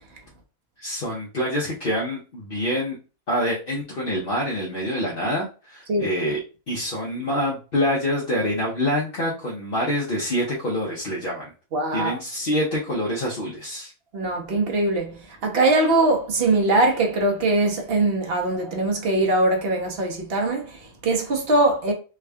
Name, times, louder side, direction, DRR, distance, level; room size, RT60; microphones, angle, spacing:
voice 1, 0.8-3.0 3.3-6.4 6.7-11.5 11.9-13.9, equal, 45° left, 1.0 m, -26 dB
voice 2, 11.7-12.1 14.1-21.9, right 2 dB, 50° right, 1.0 m, -22 dB
3.5 x 2.3 x 3.3 m
omnidirectional pair, 1.4 m